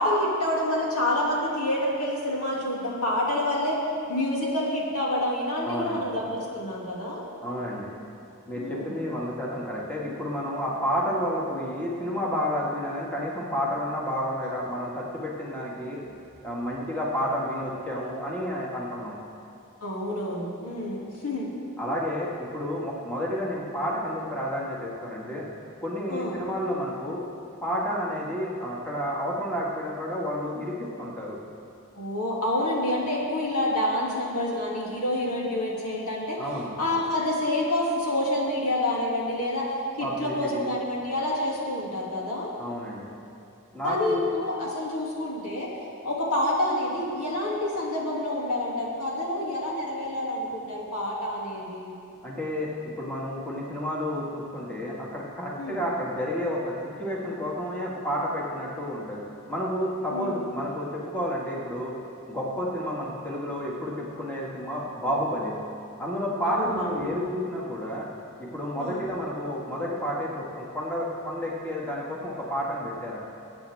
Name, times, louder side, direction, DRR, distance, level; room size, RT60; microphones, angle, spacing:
voice 1, 0.0-3.8 4.1-7.2 8.5-9.0 19.8-21.5 26.1-26.4 32.0-36.4 36.8-39.7 40.0-42.5 43.8-45.7 46.0-51.9 55.6-55.8 60.1-60.4 66.4-67.1 68.8-69.1, left 1 dB, 85° left, -4 dB, 2.6 m, -28 dB
voice 2, 5.6-6.0 7.4-7.9 8.5-16.1 16.4-19.2 21.8-25.5 25.8-27.2 27.6-31.4 36.4-36.7 40.0-40.7 42.6-43.1 43.7-44.3 52.2-59.2 59.5-62.0 62.3-65.5 66.0-68.0 68.4-73.3, equal, 10° left, -5 dB, 2.0 m, -30 dB
20.5 x 8.8 x 3.6 m, 2.6 s
head